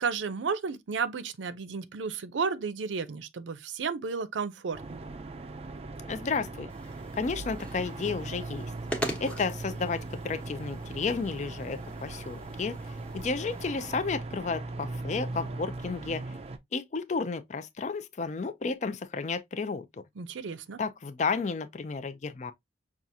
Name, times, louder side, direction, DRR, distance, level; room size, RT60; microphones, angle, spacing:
voice 1, 0.0-5.0 20.2-20.8, right 5 dB, 90° right, 0.5 m, -33 dB
sound 1, 4.7-16.6, right 2 dB, 35° right, 0.4 m, -39 dB
voice 2, 6.1-6.7 7.1-8.6 9.2-16.4 16.7-19.9 20.8-22.5, left 4 dB, 40° left, 0.4 m, -32 dB
sound 2, 6.7-13.7, equal, 5° left, 0.9 m, -42 dB
5.9 x 2.4 x 2.7 m
head